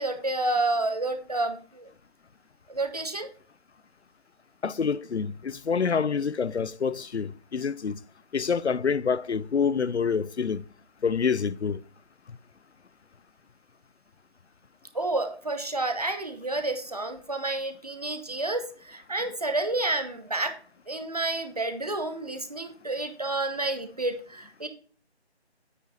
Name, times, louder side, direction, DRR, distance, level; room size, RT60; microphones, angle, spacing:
voice 1, 0.0-1.9 2.7-3.3 14.9-20.5 20.9-24.7, right 2 dB, 35° right, 0.9 m, -30 dB
voice 2, 4.6-8.0 8.3-10.6 11.0-11.8, left 6 dB, 85° left, 0.6 m, -27 dB
9.2 x 5.8 x 4.0 m
figure-of-eight pair, 165°, 33 cm